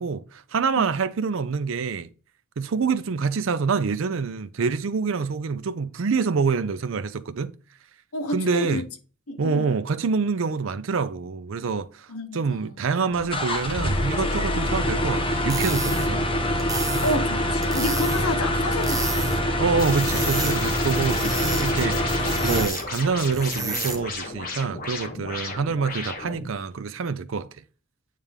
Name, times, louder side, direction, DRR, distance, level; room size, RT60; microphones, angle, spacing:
voice 1, 0.0-2.1 2.6-7.5 8.3-8.8 9.4-12.1 12.3-16.3 19.6-22.0 22.4-27.5, right 5 dB, 60° right, 0.5 m, -26 dB
voice 2, 8.1-8.8 9.3-9.8 12.1-12.9 16.1-16.4 17.0-19.4, left 1 dB, 80° left, 1.0 m, -30 dB
sound 1, 13.1-22.7, left 1 dB, 25° left, 0.9 m, -25 dB
sound 2, 15.3-24.2, right 3 dB, 15° right, 0.8 m, -33 dB
sound 3, 19.8-26.5, left 4 dB, 40° left, 1.3 m, -34 dB
9.0 x 3.4 x 3.4 m
head